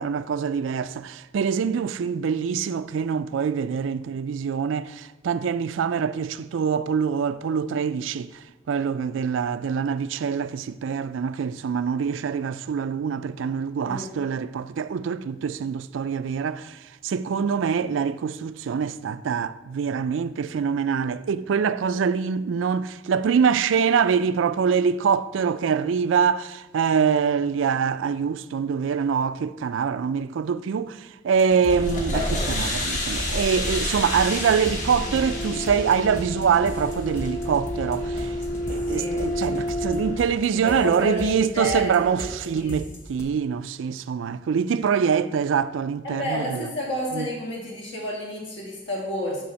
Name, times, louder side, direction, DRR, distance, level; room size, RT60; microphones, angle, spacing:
voice 1, 0.0-38.4 38.7-46.7 47.1-47.3, right 6 dB, 85° right, 0.3 m, -24 dB
sound 1, 31.4-43.2, equal, 15° left, 0.8 m, -39 dB
sound 2, 31.7-40.2, left 1 dB, 40° left, 1.4 m, -29 dB
voice 2, 38.9-39.3 40.6-42.3 42.5-43.0 46.0-49.4, left 1 dB, 65° left, 2.5 m, -30 dB
7.0 x 4.9 x 6.2 m
head